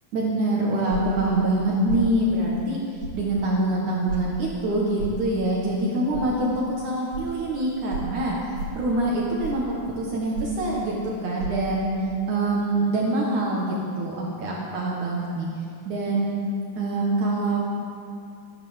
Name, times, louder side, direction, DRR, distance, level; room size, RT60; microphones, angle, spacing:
voice 1, 0.1-2.8 3.1-8.4 8.8-12.0 12.3-15.5 15.9-16.4 16.8-17.6, right 2 dB, 60° right, -3 dB, 2.8 m, -25 dB
sound 1, 0.9-1.2 1.9-2.1 3.0-3.2 4.1-4.2 5.0-5.2 6.1-6.3 7.1-7.2 7.9-8.1 8.6-8.8 9.4-9.7 10.3-10.6 11.4-11.5, right 2 dB, 90° right, 3.8 m, -32 dB
14.5 x 10.5 x 7.2 m, 2.4 s
omnidirectional pair, 4.1 m